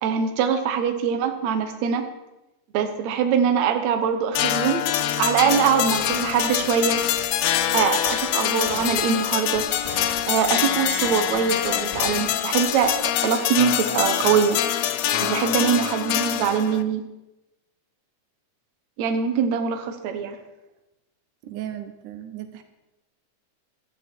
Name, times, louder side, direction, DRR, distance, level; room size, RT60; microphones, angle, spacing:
voice 1, 0.0-2.0 2.7-4.8 5.2-7.0 7.7-9.7 10.3-14.6 15.2-17.0 19.0-20.4, right 7 dB, 70° right, 6 dB, 2.3 m, -23 dB
sound 1, 4.3-16.8, left 11 dB, 70° left, 1.7 m, -25 dB
sound 2, 6.0-6.3 6.6-7.2 7.5-7.6 7.8-8.4 8.7-9.3 9.5-10.5 10.7-12.3 12.5-12.6 12.8-13.1, equal, 20° left, 2.5 m, -37 dB
voice 2, 21.4-22.6, right 11 dB, 85° right, 8 dB, 2.5 m, -36 dB
15.5 x 12.5 x 4.5 m, 0.98 s
omnidirectional pair, 3.5 m